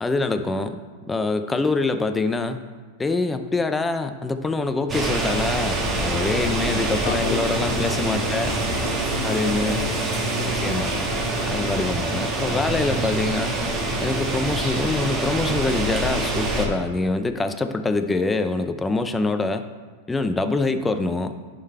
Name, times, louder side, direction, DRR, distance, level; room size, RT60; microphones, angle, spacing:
voice 1, 0.0-0.8 1.1-2.6 3.0-8.5 9.2-9.8 10.6-10.9 11.5-13.6 14.0-19.6 20.1-21.3, left 3 dB, 10° left, 9 dB, 0.5 m, -25 dB
sound 1, 4.9-16.7, right 2 dB, 20° right, 1.4 m, -25 dB
voice 2, 6.4-11.1 13.0-13.1, left 7 dB, 65° left, 7 dB, 0.7 m, -34 dB
10.5 x 3.9 x 4.3 m, 1.4 s
hypercardioid pair, 125°, 0 cm